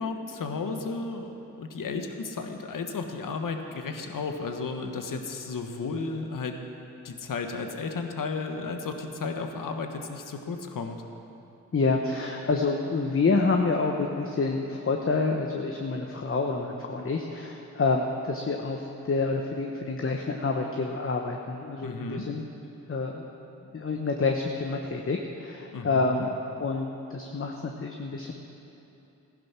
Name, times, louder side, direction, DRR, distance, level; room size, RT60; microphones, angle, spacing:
voice 1, 0.0-6.6 7.0-11.0 21.8-22.2 25.7-26.3, left 4 dB, 65° left, 5 dB, 1.4 m, -33 dB
voice 2, 11.7-22.4 22.9-23.2 23.7-26.3 26.6-28.3, left 3 dB, 40° left, 2 dB, 1.1 m, -28 dB
15.0 x 10.5 x 6.1 m, 2.9 s
supercardioid pair, 45°, 35 cm